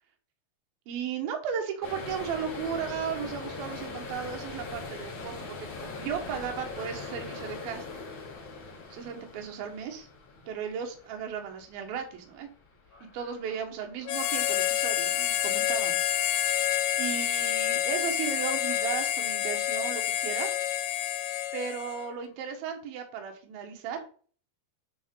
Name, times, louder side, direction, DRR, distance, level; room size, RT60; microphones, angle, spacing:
voice 1, 0.9-5.7 6.0-7.8 8.9-10.1 10.5-12.5 13.1-16.0 17.0-20.6 21.5-24.0, right 7 dB, 75° right, 3 dB, 3.0 m, -35 dB
sound 1, 1.8-16.6 16.9-17.4 17.7-19.1, left 4 dB, 50° left, 1.6 m, -42 dB
Harmonica, 14.1-22.1, left 11 dB, 90° left, 2.6 m, -28 dB
10.5 x 3.8 x 3.7 m, 0.42 s
omnidirectional pair, 4.5 m